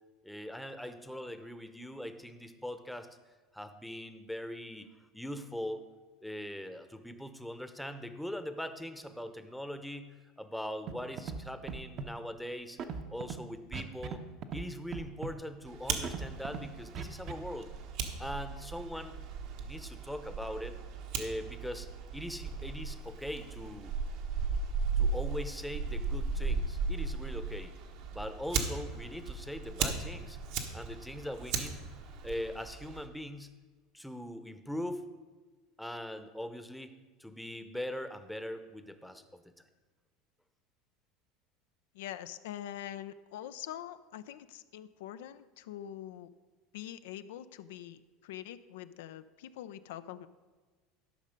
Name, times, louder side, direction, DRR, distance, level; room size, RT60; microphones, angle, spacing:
voice 1, 0.2-3.1 3.5-4.9 5.1-5.8 6.2-12.8 13.1-14.2 14.5-17.7 18.2-19.1 19.6-20.8 21.2-23.9 25.0-27.7 28.1-30.4 30.7-31.8 32.2-33.5 33.9-35.1 35.8-39.4, equal, ahead, 9 dB, 0.8 m, -41 dB
Scratching (performance technique), 10.9-11.0 11.2-11.4 11.7-12.1 12.8-13.3 13.7-14.2 14.4-14.6 14.9-15.3 16.0-16.6 16.9-17.3, right 6 dB, 45° right, 0.8 m, -38 dB
Fire, 15.7-33.1, right 4 dB, 65° right, 1.2 m, -36 dB
voice 2, 41.9-46.3 46.7-50.3, left 11 dB, 80° left, 12 dB, 0.4 m, -44 dB
12.5 x 5.5 x 5.2 m, 1.3 s
supercardioid pair, 105°, 0 cm